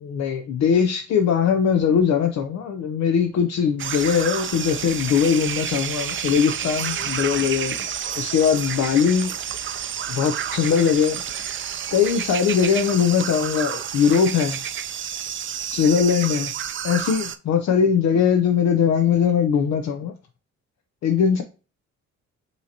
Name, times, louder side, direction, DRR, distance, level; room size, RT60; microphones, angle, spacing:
voice 1, 0.0-9.3 10.1-11.2 11.9-14.6 15.7-16.5 16.8-20.1 21.0-21.4, left 7 dB, 65° left, 0.6 m, -21 dB
sound 1, 3.8-17.4, right 9 dB, 40° right, 0.5 m, -30 dB
5.5 x 2.9 x 2.7 m
cardioid pair, 90°, 30 cm